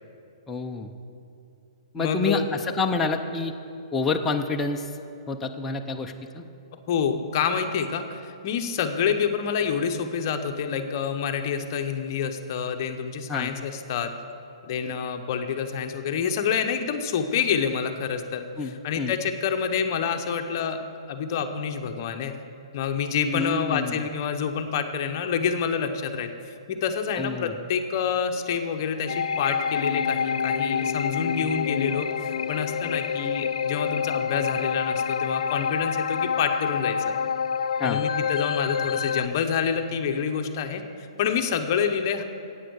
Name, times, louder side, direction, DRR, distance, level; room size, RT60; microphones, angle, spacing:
voice 1, 0.5-0.9 1.9-3.5 3.9-4.9 5.3-6.4 13.3-13.5 18.6-19.1 23.3-24.0 27.2-27.5 37.8-38.0, left 4 dB, 5° left, 1 dB, 0.4 m, -28 dB
voice 2, 2.0-2.5 6.9-14.1 14.6-22.3 22.7-37.1 37.8-42.2, left 7 dB, 35° left, 6 dB, 0.7 m, -27 dB
sound 1, 29.1-39.3, left 7 dB, 75° left, 0.4 m, -27 dB
9.8 x 8.5 x 7.8 m, 2.6 s
hypercardioid pair, 175°, 3 cm